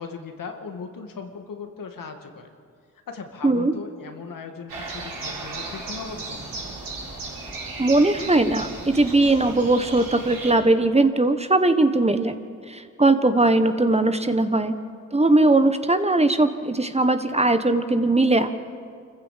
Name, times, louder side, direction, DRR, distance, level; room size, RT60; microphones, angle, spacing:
voice 1, 0.0-2.5 3.1-6.4, left 5 dB, 70° left, 5 dB, 2.1 m, -38 dB
voice 2, 3.4-3.7 7.8-12.4 12.7-14.7 15.1-18.5, right 2 dB, 20° right, 9 dB, 1.4 m, -20 dB
sound 1, 4.7-10.5, right 3 dB, 75° right, 4.8 m, -35 dB
25.5 x 15.0 x 7.5 m, 2.2 s
supercardioid pair, 50°, 34 cm